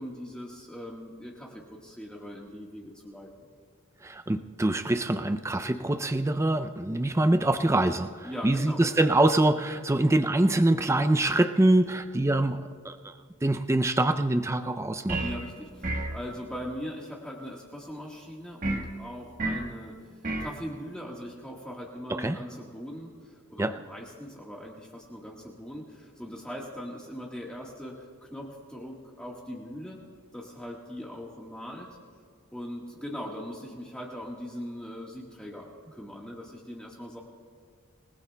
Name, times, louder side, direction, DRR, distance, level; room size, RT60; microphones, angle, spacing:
voice 1, 0.0-3.3 8.2-8.8 15.2-30.0 30.3-31.9 32.5-37.2, equal, 5° left, -3 dB, 1.4 m, -40 dB
voice 2, 4.0-13.1 13.4-15.2 22.1-22.4 23.6-23.7, right 1 dB, 15° right, 9 dB, 0.4 m, -24 dB
sound 1, 15.1-15.5 15.8-16.2 18.6-18.9 19.4-19.7 20.2-20.6, right 2 dB, 40° right, 1.3 m, -30 dB
27.5 x 19.0 x 2.3 m, 2.1 s
head